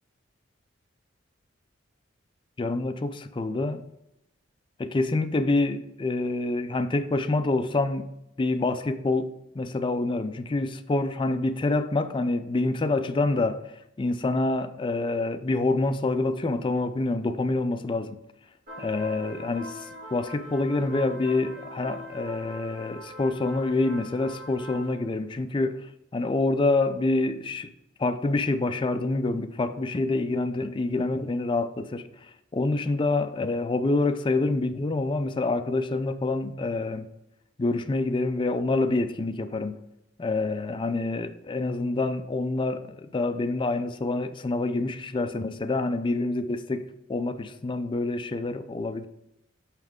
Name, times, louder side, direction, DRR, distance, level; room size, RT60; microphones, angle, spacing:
voice 1, 2.6-3.8 4.8-8.1 8.4-18.2 18.8-27.7 28.0-37.1 37.6-39.8 40.2-49.1, left 2 dB, 25° left, 0.4 m, -27 dB
sound 1, 18.7-24.9, equal, 45° right, 2.6 m, -42 dB
6.2 x 5.7 x 3.6 m
head